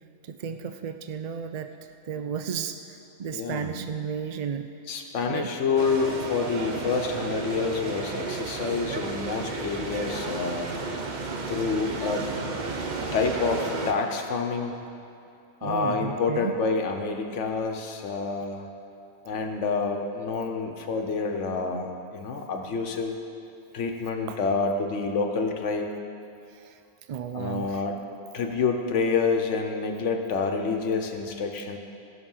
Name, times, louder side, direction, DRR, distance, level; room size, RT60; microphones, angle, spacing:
voice 1, 0.2-1.7 2.1-4.7 5.2-5.5 15.6-16.5 24.3-24.4 26.6-26.8 27.1-27.8, right 7 dB, 60° right, 8 dB, 0.4 m, -33 dB
voice 2, 3.3-3.9 4.9-10.7 11.5-12.3 13.1-14.8 15.6-18.7 19.2-23.1 23.7-25.9 27.3-28.0 28.3-31.8, left 4 dB, 90° left, 4 dB, 1.3 m, -28 dB
sound 1, 5.8-13.9, right 3 dB, 45° right, 0.8 m, -33 dB
16.5 x 6.2 x 5.6 m, 2.6 s
omnidirectional pair, 1.2 m